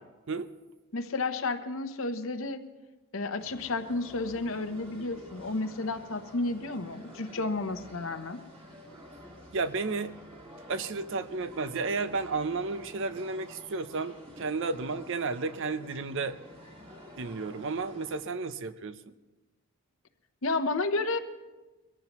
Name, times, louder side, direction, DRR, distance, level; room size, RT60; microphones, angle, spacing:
voice 1, 0.9-2.6 3.1-8.4 20.4-21.2, left 3 dB, 65° left, 9 dB, 0.9 m, -31 dB
sound 1, 3.4-18.2, equal, 25° right, 2.2 m, -50 dB
voice 2, 9.5-10.1 10.7-16.4 17.2-19.1, right 4 dB, 60° right, 12 dB, 0.6 m, -32 dB
22.5 x 15.0 x 3.1 m, 1.2 s
head